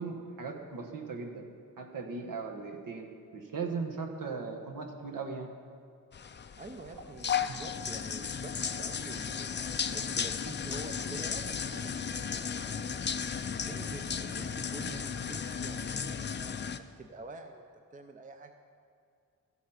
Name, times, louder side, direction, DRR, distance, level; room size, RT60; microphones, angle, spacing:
voice 1, 0.0-1.4 1.8-5.5 7.0-7.1 7.5-7.6, right 4 dB, 65° right, 3 dB, 1.3 m, -38 dB
sound 1, 6.1-16.8, left 7 dB, 35° left, 0.4 m, -35 dB
voice 2, 6.6-9.5 9.9-13.0 13.6-17.7 17.9-18.5, right 2 dB, 25° right, 6 dB, 0.6 m, -47 dB
14.0 x 8.3 x 5.7 m, 2.4 s
wide cardioid pair, 160°, 34 cm